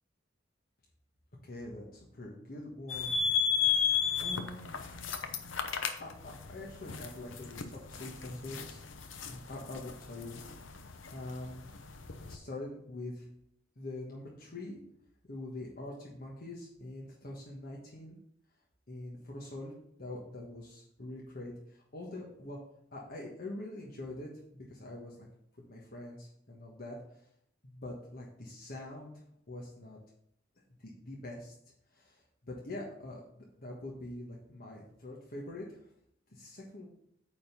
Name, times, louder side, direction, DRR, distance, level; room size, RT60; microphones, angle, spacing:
voice 1, 1.4-3.8 4.2-8.8 9.1-10.4 11.1-11.7 12.3-13.3 13.8-14.8 15.3-18.2 18.9-19.7 20.0-22.6 22.9-25.3 25.6-27.3 27.6-30.0 30.8-31.5 31.9-35.9 36.3-36.9, left 2 dB, 50° left, -3 dB, 1.4 m, -44 dB
sound 1, 2.9-12.4, left 7 dB, 85° left, 0.8 m, -34 dB
9.0 x 4.0 x 5.2 m, 0.71 s
head